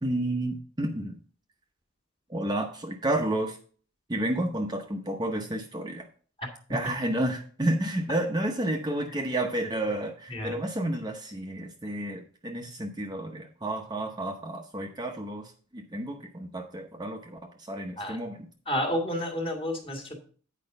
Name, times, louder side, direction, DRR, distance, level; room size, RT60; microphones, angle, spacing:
voice 1, 0.0-1.2 2.3-3.6 4.1-6.1 6.7-18.4, right 1 dB, 20° right, 2 dB, 0.8 m, -31 dB
voice 2, 10.3-10.6 18.0-18.2 18.7-20.2, equal, 25° left, 2 dB, 1.9 m, -30 dB
8.8 x 5.0 x 5.3 m, 0.43 s
head